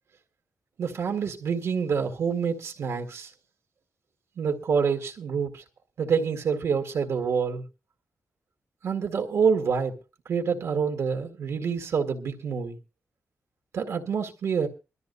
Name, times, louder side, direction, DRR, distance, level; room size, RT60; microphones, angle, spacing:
voice 1, 0.8-3.3 4.4-5.6 6.0-7.6 8.8-9.9 10.3-12.8 13.7-14.7, right 6 dB, 75° right, 1.9 m, -27 dB
23.0 x 13.0 x 2.6 m
wide cardioid pair, 135°, 5 cm